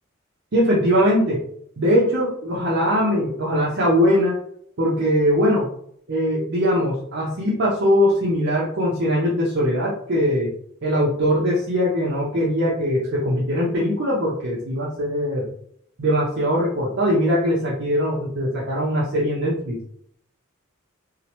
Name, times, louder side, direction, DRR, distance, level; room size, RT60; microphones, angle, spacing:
voice 1, 0.5-1.4 1.8-4.4 4.8-5.7 6.1-10.5 10.8-15.5 16.0-19.8, equal, 55° right, -5 dB, 0.6 m, -21 dB
2.8 x 2.0 x 2.9 m, 0.67 s
head